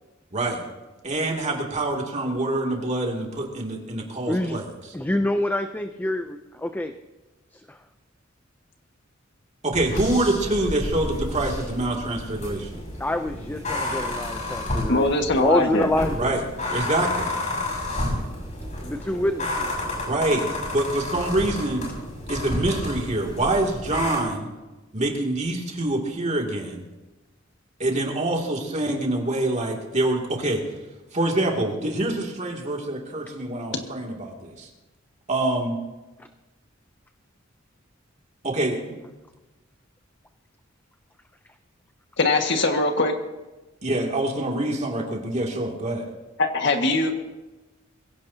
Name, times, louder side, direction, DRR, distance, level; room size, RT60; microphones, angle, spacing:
voice 1, 0.3-0.6 1.0-4.9 9.6-12.8 16.1-16.4 16.7-17.3 20.0-20.5 20.7-21.9 22.3-24.5 24.9-26.8 27.8-30.6 31.1-34.7 35.3-35.8 38.4-39.0 43.8-46.1, right 2 dB, 35° right, 0 dB, 2.6 m, -25 dB
voice 2, 4.3-4.6 4.9-6.9 13.0-15.1 15.3-16.4 18.1-18.2 18.8-19.7, left 1 dB, 10° left, 7 dB, 0.5 m, -26 dB
sound 1, 9.7-24.2, left 1 dB, 40° left, 6.3 m, -31 dB
voice 3, 14.9-15.9 42.2-43.1 46.4-47.1, left 2 dB, 65° left, 3 dB, 1.8 m, -21 dB
22.5 x 16.5 x 2.8 m, 1.1 s
head